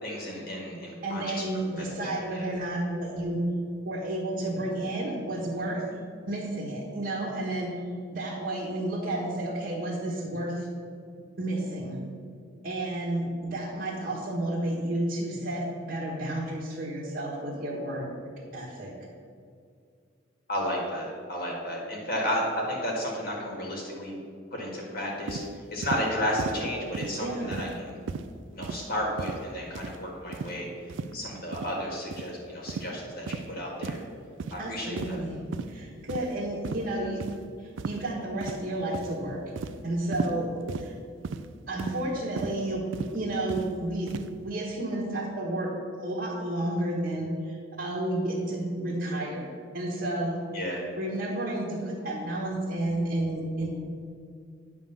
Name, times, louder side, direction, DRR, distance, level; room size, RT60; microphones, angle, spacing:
voice 1, 0.0-1.4 1.7-2.5 20.5-24.2 24.5-25.4 25.7-28.0 28.5-30.7 31.1-34.0 34.5-35.2 50.5-50.8, equal, 50° left, -2 dB, 1.6 m, -32 dB
voice 2, 1.0-3.4 3.8-5.9 6.3-7.7 8.1-10.7 11.4-12.0 12.6-18.0 18.5-18.9 27.2-27.5 34.6-35.4 35.7-37.3 37.6-39.4 39.8-40.5 40.8-40.9 41.7-42.8 43.1-44.1 44.4-49.5 49.7-50.4 51.0-53.7, right 1 dB, 50° right, -6 dB, 1.3 m, -31 dB
sound 1, 25.3-25.5 25.8-26.1 26.4-26.6 26.9-27.2 27.5-27.8 28.1-28.3 28.6-28.9 29.2-29.4 29.8-30.0 30.3-30.5 30.9-31.1 31.5-31.7 32.1-32.3 32.7-32.9 33.3-33.5 33.8-34.0 34.4-34.6 35.0-35.3 35.5-35.7 36.1-36.4 36.6-36.9 37.2-37.4 37.8-38.1 38.4-38.7 38.9-39.2 39.6-39.8 40.1-40.4 40.7-40.9 41.2-41.5 41.8-42.0 42.4-42.5 42.9-43.1 43.5-43.7 44.1-44.3, right 5 dB, 70° right, 0.4 m, -35 dB
9.5 x 3.6 x 6.7 m, 2.3 s
head